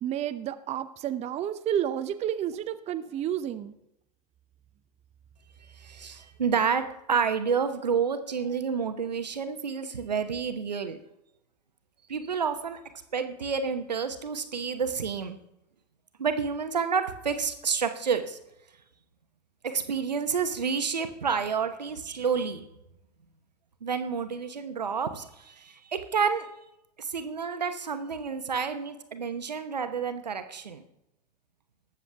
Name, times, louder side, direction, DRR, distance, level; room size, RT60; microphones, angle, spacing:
voice 1, 0.0-3.7, right 10 dB, 30° right, 11 dB, 0.7 m, -30 dB
voice 2, 5.7-11.0 12.1-12.8 13.1-15.4 16.2-18.4 19.6-22.6 23.8-26.5 27.0-30.8, right 6 dB, 85° right, 9 dB, 1.0 m, -29 dB
19.5 x 7.3 x 3.5 m, 0.84 s
figure-of-eight pair, 85°, 21 cm